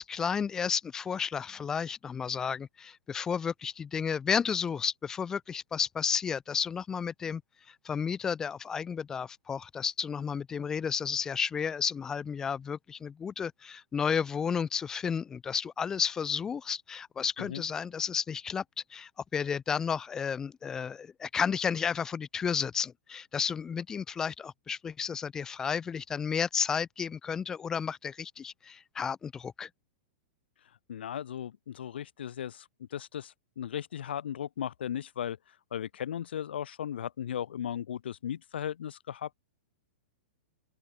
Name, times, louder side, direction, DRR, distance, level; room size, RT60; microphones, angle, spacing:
voice 1, 0.0-7.4 7.7-18.6 18.9-29.7, left 6 dB, 10° left, 3.5 m, -32 dB
voice 2, 30.9-39.4, left 9 dB, 70° left, 4.4 m, -37 dB
supercardioid pair, 175°, 6 cm